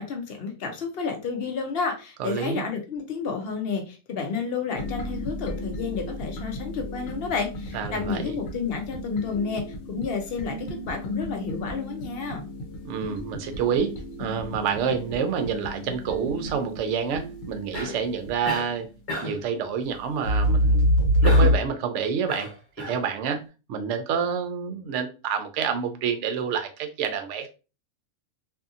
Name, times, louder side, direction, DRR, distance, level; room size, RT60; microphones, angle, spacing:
voice 1, 0.0-12.5, left 5 dB, 60° left, 3 dB, 0.7 m, -31 dB
voice 2, 2.2-2.6 7.7-8.3 12.8-18.9 19.2-20.9 21.2-22.5 22.8-23.4 23.7-27.5, right 7 dB, 65° right, 7 dB, 0.8 m, -28 dB
sound 1, 4.8-18.5 20.2-21.6, equal, 80° left, 1.0 m, -28 dB
Cough, 17.7-18.1 18.4-18.7 19.1-19.5 21.2-21.7 22.3-23.0, left 2 dB, 40° left, 1.1 m, -32 dB
2.7 x 2.6 x 2.4 m, 0.32 s
omnidirectional pair, 1.4 m